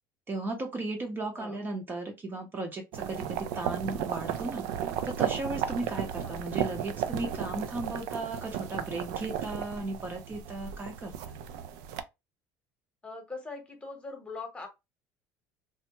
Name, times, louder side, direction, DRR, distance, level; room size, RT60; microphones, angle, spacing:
voice 1, 0.3-4.6 5.0-11.4, right 2 dB, 30° right, 0.7 m, -36 dB
sound 1, 2.9-12.0, right 9 dB, 80° right, 0.4 m, -34 dB
voice 2, 13.0-14.7, left 3 dB, 15° left, 1.0 m, -41 dB
3.3 x 2.0 x 2.9 m
cardioid pair, 115°, 7 cm